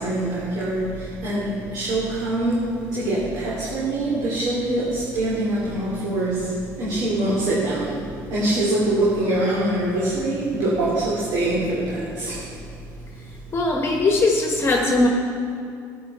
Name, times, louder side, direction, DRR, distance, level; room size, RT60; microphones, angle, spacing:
voice 1, 0.0-12.6, right 1 dB, 70° right, -7 dB, 2.9 m, -24 dB
voice 2, 13.5-15.1, left 2 dB, 35° left, 1 dB, 1.2 m, -20 dB
12.0 x 9.6 x 4.3 m, 2.4 s
supercardioid pair, 90°, 8 cm